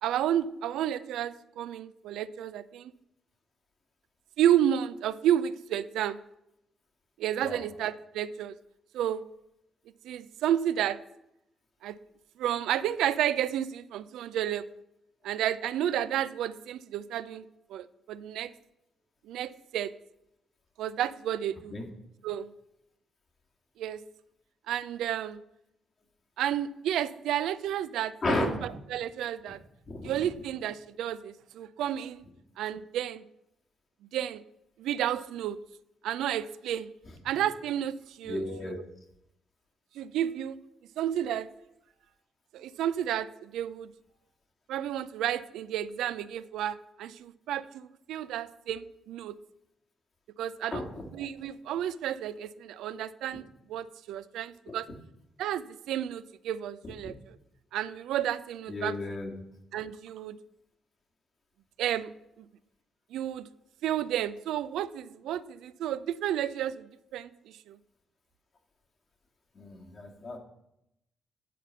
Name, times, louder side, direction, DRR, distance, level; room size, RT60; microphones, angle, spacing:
voice 1, 0.0-2.9 4.4-6.2 7.2-8.6 8.9-9.2 10.0-11.0 11.8-12.0 12.4-14.6 15.2-17.4 17.7-18.5 19.3-19.9 20.8-21.7 22.2-22.5 23.8-24.0 24.7-25.4 26.4-28.5 28.9-29.6 30.0-32.2 32.6-33.2 34.1-34.4 34.8-35.6 36.0-36.9 37.2-38.8 40.0-40.6 41.0-41.5 42.5-43.9 44.7-49.4 50.4-50.8 51.1-53.4 53.7-54.9 55.4-57.4 57.7-58.9 59.7-60.4 61.8-62.1 63.1-63.5 63.8-67.8, right 11 dB, 80° right, 15 dB, 0.4 m, -31 dB
voice 2, 28.2-28.8 29.9-30.3 38.2-38.8 50.7-51.1 54.7-54.8 56.8-57.1 58.7-59.3 69.5-70.4, left 2 dB, 50° left, 1 dB, 2.1 m, -34 dB
9.1 x 4.2 x 7.3 m, 0.82 s
supercardioid pair, 55°, 0 cm